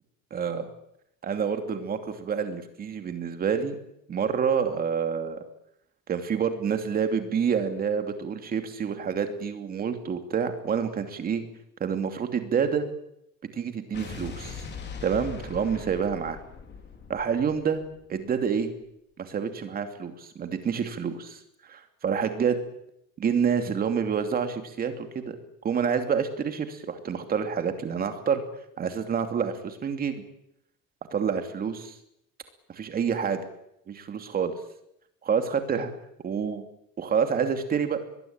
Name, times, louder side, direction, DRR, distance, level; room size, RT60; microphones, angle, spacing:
voice 1, 0.3-0.7 1.2-3.8 4.1-5.4 6.1-11.4 11.8-12.9 13.5-14.6 15.0-16.4 17.1-17.8 18.1-18.7 19.2-22.6 23.2-25.4 25.6-28.4 28.8-30.2 31.1-32.0 32.7-33.5 33.9-34.6 35.2-35.9 36.2-36.7 37.0-38.0, right 6 dB, 25° right, 7 dB, 2.7 m, -28 dB
Explosion, 13.9-18.3, left 5 dB, 35° left, 4.0 m, -40 dB
23.0 x 21.0 x 8.9 m, 0.78 s
cardioid pair, 170°, 32 cm